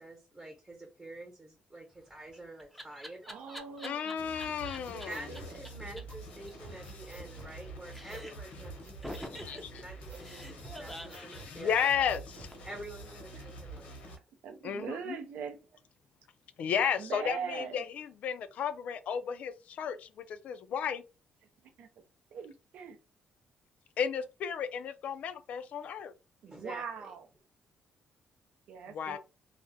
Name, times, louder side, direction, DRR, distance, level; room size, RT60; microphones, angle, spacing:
voice 1, 0.0-3.2 5.0-11.8 12.6-14.2 26.5-27.1, right 1 dB, 20° right, 0.9 m, -48 dB
Laughter, 2.0-5.1 5.3-5.4 5.6-5.7 6.0-6.1 6.3-7.6 7.9-8.5 9.0-12.8, left 1 dB, ahead, 0.5 m, -46 dB
voice 2, 3.3-4.2 4.9-5.5 13.3-13.4 14.4-15.6 17.0-17.8 21.8-21.9 22.3-23.0 26.4-27.2 28.7-29.2, right 6 dB, 75° right, 0.5 m, -41 dB
voice 3, 3.8-5.2 9.4-9.8 11.5-12.5 14.6-15.2 16.6-21.0 24.0-26.1 28.9-29.2, left 8 dB, 70° left, 0.3 m, -33 dB
sound 1, 4.2-14.2, right 1 dB, 85° left, 0.8 m, -47 dB
sound 2, 4.6-5.5 6.1-6.2 6.6-7.5 8.1-8.3 8.6-9.6 10.1-10.3 10.6-11.5 12.1-12.6, right 2 dB, 50° right, 0.9 m, -50 dB
2.4 x 2.1 x 2.6 m
cardioid pair, 95°, 3 cm